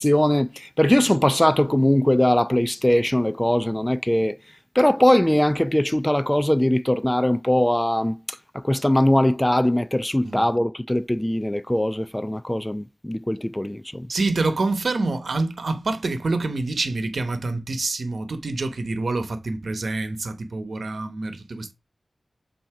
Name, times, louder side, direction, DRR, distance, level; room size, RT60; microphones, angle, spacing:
voice 1, 0.0-4.4 4.7-14.1, left 1 dB, 15° left, 0.5 m, -21 dB
voice 2, 14.1-21.7, right 3 dB, 80° right, 0.9 m, -26 dB
7.4 x 2.8 x 4.8 m
cardioid pair, 50°, 0 cm